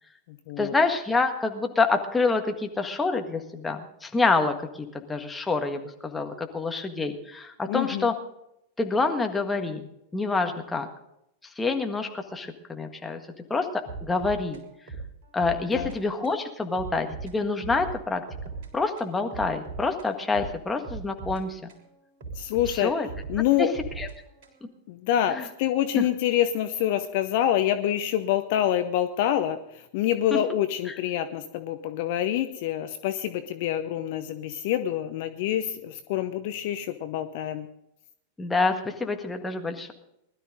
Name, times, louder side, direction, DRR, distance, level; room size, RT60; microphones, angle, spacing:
voice 1, 0.6-8.1 8.8-10.9 11.6-13.2 13.5-13.7 14.0-14.6 15.3-18.2 18.7-21.7 22.7-23.1 23.6-23.7 24.0-24.1 25.3-25.5 26.0-26.1 30.3-30.4 30.9-31.0 38.4-39.9, left 3 dB, 10° left, 4 dB, 1.6 m, -27 dB
voice 2, 7.7-8.1 15.7-15.9 22.3-22.9 23.3-23.7 24.9-29.6 29.9-37.7, left 11 dB, 50° left, 10 dB, 0.8 m, -26 dB
sound 1, 13.9-16.0 16.2-16.4 16.7-18.7 19.0-21.9 22.2-24.7, right 4 dB, 50° right, 3.6 m, -39 dB
20.5 x 12.5 x 3.8 m, 0.80 s
figure-of-eight pair, 90°, 0 cm